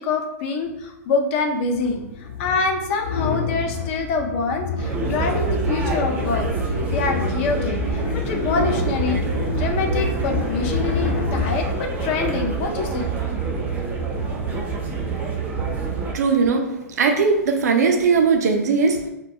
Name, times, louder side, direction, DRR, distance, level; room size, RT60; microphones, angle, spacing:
voice 1, 0.0-6.5 6.9-9.2 9.5-13.1, left 4 dB, 45° left, 5 dB, 0.4 m, -25 dB
sound 1, 0.7-0.8 1.7-12.3, left 5 dB, 60° left, 0.9 m, -28 dB
sound 2, 4.8-16.1, right 4 dB, 20° right, 0.5 m, -26 dB
voice 2, 16.1-16.7 17.0-19.1, right 5 dB, 70° right, 3 dB, 0.4 m, -19 dB
2.2 x 2.2 x 2.7 m, 0.88 s
hypercardioid pair, 120°, 9 cm